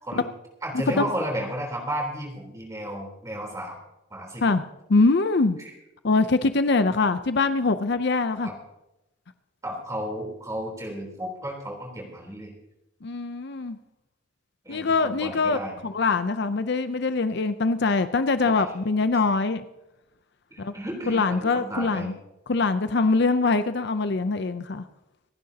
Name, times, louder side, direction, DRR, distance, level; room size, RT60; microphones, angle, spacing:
voice 1, 0.6-3.8 4.1-4.4 5.6-5.7 8.4-8.6 9.6-12.5 14.6-15.8 18.4-18.7 20.5-22.1, equal, 15° right, 0 dB, 3.6 m, -33 dB
voice 2, 4.9-5.6 6.0-8.5 13.0-13.8 14.7-15.6 15.8-19.6 20.6-20.7 21.1-22.1 22.5-24.8, left 3 dB, 55° left, 11 dB, 0.6 m, -23 dB
27.5 x 10.5 x 2.9 m, 0.92 s
head